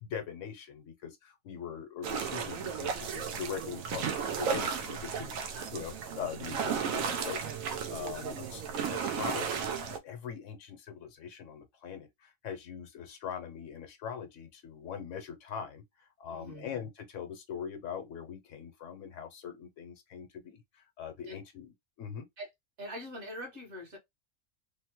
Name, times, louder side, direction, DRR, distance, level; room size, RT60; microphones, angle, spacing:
voice 1, 0.0-5.4 5.7-8.6 8.9-21.7 22.0-22.3, left 7 dB, 70° left, 1.0 m, -42 dB
sound 1, 2.0-10.0, right 6 dB, 80° right, 1.0 m, -34 dB
voice 2, 16.3-16.7 21.3-21.4 22.4-22.5 22.8-24.0, equal, 55° right, 1.6 m, -43 dB
3.5 x 2.0 x 2.9 m
omnidirectional pair, 1.4 m